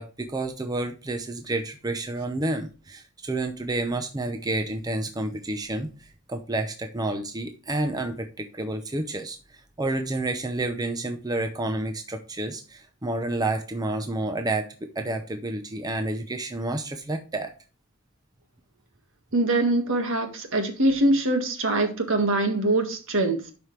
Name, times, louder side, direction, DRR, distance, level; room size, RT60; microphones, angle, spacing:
voice 1, 0.0-17.5, right 2 dB, 15° right, 6 dB, 0.7 m, -30 dB
voice 2, 19.3-23.4, right 2 dB, 60° right, 5 dB, 1.8 m, -23 dB
12.0 x 5.1 x 3.2 m, 0.36 s
head